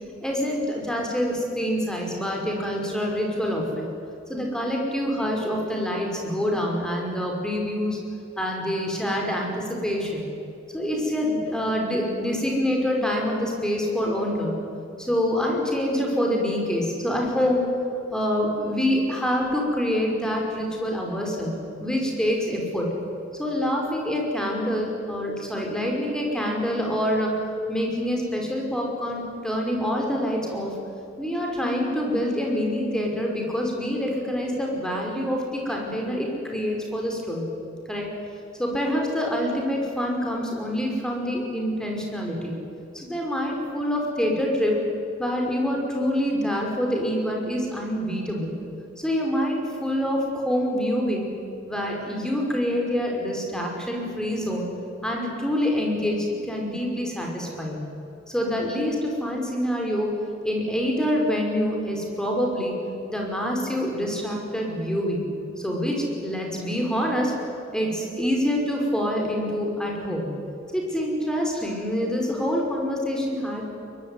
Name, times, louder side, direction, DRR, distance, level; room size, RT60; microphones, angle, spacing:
voice 1, 0.2-3.9 4.3-8.0 8.4-10.2 10.7-14.6 15.0-17.7 18.1-22.9 23.4-27.4 27.7-30.7 31.2-37.5 37.9-38.1 38.6-42.6 42.9-44.8 45.2-48.5 49.0-51.3 51.7-54.6 55.0-57.8 58.3-60.2 60.4-62.7 63.1-65.2 65.6-67.3 67.7-70.3 70.7-73.6, equal, 5° left, 0 dB, 5.4 m, -26 dB
23.0 x 22.0 x 9.8 m, 2.6 s
head